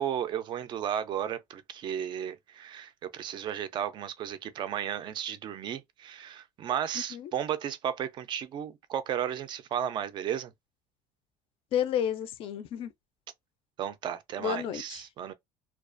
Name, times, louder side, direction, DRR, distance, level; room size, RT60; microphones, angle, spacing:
voice 1, 0.0-10.5 13.8-15.3, right 9 dB, 35° right, 0.4 m, -34 dB
voice 2, 11.7-12.9 14.4-15.0, left 9 dB, 45° left, 0.4 m, -31 dB
2.3 x 2.3 x 2.4 m
cardioid pair, 155°, 13 cm